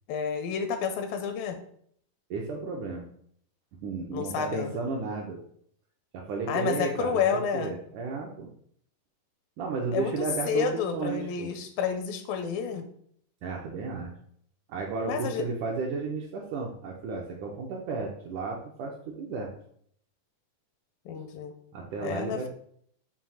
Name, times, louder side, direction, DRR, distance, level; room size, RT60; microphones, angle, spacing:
voice 1, 0.1-1.6 4.1-4.7 6.5-7.7 9.9-12.9 15.0-15.5 21.1-21.5 22.0-22.5, left 7 dB, 80° left, 7 dB, 2.3 m, -30 dB
voice 2, 2.3-3.1 3.8-5.4 6.1-8.5 9.6-11.6 13.4-14.1 14.7-19.5 21.7-22.5, right 4 dB, 75° right, -1 dB, 1.9 m, -33 dB
7.1 x 2.8 x 5.6 m, 0.64 s
omnidirectional pair, 4.3 m